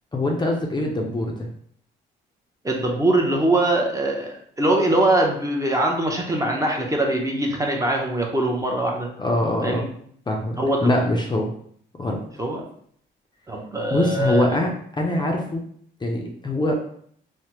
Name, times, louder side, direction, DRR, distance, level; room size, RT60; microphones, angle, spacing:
voice 1, 0.1-1.5 9.2-9.9 10.3-11.5 12.0-12.2 13.9-15.6 16.0-16.8, left 1 dB, 20° left, 0 dB, 0.5 m, -23 dB
voice 2, 2.6-9.1 9.6-9.9 10.6-10.9 12.4-12.6 13.5-14.4, right 1 dB, 15° right, 0 dB, 0.7 m, -22 dB
3.3 x 2.0 x 2.9 m, 0.62 s
cardioid pair, 90°, 20 cm